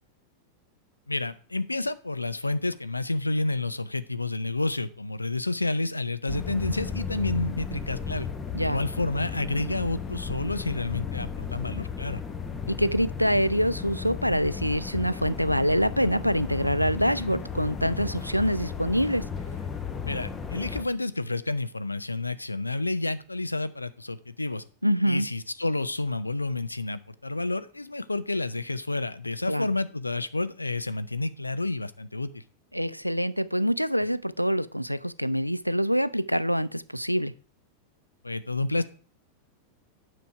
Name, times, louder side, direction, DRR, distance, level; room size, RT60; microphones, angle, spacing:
voice 1, 1.1-8.3 8.6-12.2 20.0-24.6 25.1-32.4 38.2-38.8, left 2 dB, 85° left, 0.5 m, -30 dB
sound 1, 6.3-20.8, left 6 dB, 20° left, 1.1 m, -35 dB
voice 2, 12.7-19.3 24.8-25.3 29.5-29.7 32.7-37.3, equal, 90° right, 0.4 m, -25 dB
9.4 x 6.1 x 4.8 m
figure-of-eight pair, 90°, 0 cm